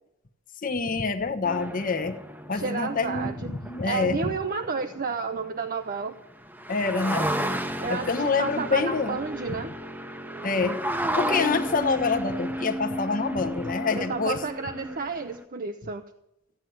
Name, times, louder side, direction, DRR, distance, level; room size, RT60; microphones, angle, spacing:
voice 1, 0.6-2.2 2.5-4.3 6.7-7.3 7.9-9.2 10.4-10.8 11.2-14.4, left 4 dB, 40° left, 5 dB, 1.0 m, -26 dB
sound 1, 1.4-5.5 6.1-6.2 6.4-15.4, equal, 10° right, 0.9 m, -33 dB
voice 2, 2.5-3.6 3.8-6.1 7.8-9.7 13.9-16.0, right 4 dB, 40° right, 7 dB, 0.7 m, -31 dB
14.0 x 9.0 x 8.0 m, 0.83 s
head